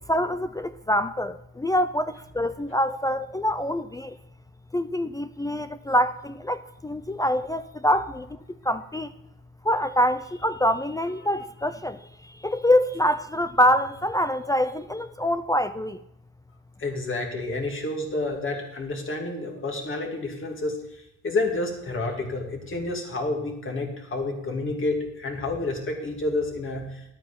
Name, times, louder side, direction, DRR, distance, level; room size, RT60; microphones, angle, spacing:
voice 1, 0.0-4.2 4.7-8.4 8.6-9.1 9.6-16.0, equal, 10° left, 11 dB, 0.4 m, -25 dB
voice 2, 16.8-27.0, left 2 dB, 40° left, 1 dB, 2.7 m, -29 dB
11.0 x 8.8 x 5.3 m, 0.82 s
cardioid pair, 90°, 30 cm